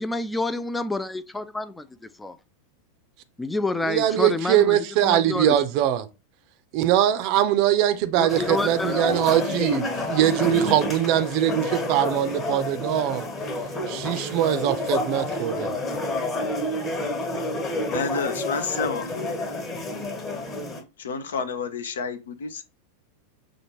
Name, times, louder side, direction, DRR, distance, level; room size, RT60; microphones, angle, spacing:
voice 1, 0.0-2.4 3.4-5.6 8.2-8.9 11.6-11.7, left 2 dB, 10° left, 0.3 m, -29 dB
voice 2, 3.8-6.1 6.7-13.3 13.9-15.8, right 11 dB, 45° right, 0.5 m, -22 dB
sound 1, 8.3-20.8, left 2 dB, 25° left, 1.3 m, -29 dB
voice 3, 17.9-19.5 21.0-22.6, left 5 dB, 65° left, 0.6 m, -30 dB
6.1 x 2.5 x 3.0 m
figure-of-eight pair, 90°, 0 cm